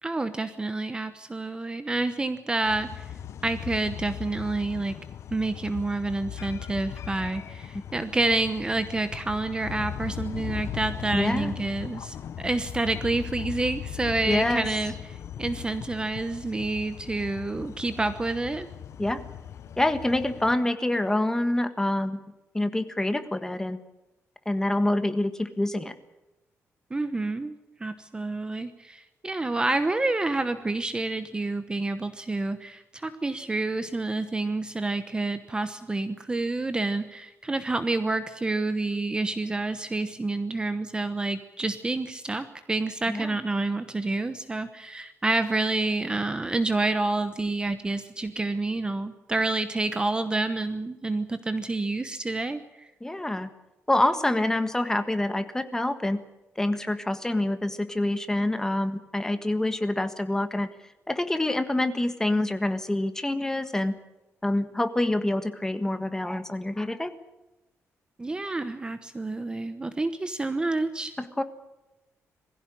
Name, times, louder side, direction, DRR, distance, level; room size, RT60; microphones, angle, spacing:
voice 1, 0.0-3.1 3.4-5.0 5.3-18.7 26.9-27.5 27.8-52.9 68.2-71.1, right 2 dB, 15° right, 10 dB, 1.0 m, -28 dB
sound 1, 2.6-20.6, left 9 dB, 60° left, 0.8 m, -38 dB
voice 2, 11.1-11.5 14.3-14.7 19.0-19.2 19.8-22.2 22.5-23.8 24.4-25.9 43.1-43.3 53.0-53.5 53.9-56.2 56.6-60.7 61.1-63.9 64.4-67.1 71.2-71.4, left 1 dB, 10° left, 9 dB, 1.5 m, -26 dB
21.5 x 15.5 x 10.0 m, 0.98 s
wide cardioid pair, 150°, 5 cm